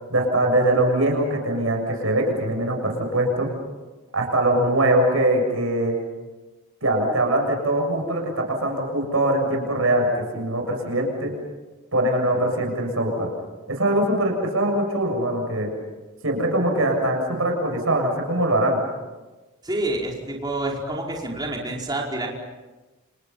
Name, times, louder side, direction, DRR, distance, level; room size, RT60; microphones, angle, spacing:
voice 1, 0.1-3.5 4.1-6.0 6.8-11.3 11.9-13.3 13.7-15.7 16.2-18.8, right 1 dB, 70° right, 2 dB, 7.0 m, -22 dB
voice 2, 19.6-22.3, right 1 dB, 20° right, -2 dB, 4.9 m, -28 dB
30.0 x 29.0 x 5.7 m, 1.2 s
head